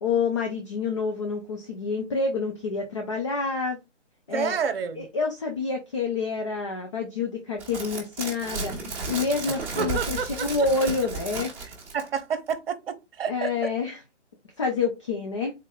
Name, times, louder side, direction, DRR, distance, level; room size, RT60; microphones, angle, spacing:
voice 1, 0.0-3.8 4.3-4.6 5.0-8.8 9.1-11.5 13.3-14.0 14.6-15.5, left 4 dB, 25° left, 0.5 m, -28 dB
voice 2, 4.3-5.1 9.5-10.7 11.9-13.7, right 6 dB, 55° right, 0.9 m, -30 dB
sound 1, 7.6-12.2 12.5-12.6, right 3 dB, 5° right, 1.2 m, -33 dB
4.3 x 3.8 x 2.3 m
hypercardioid pair, 160°, 36 cm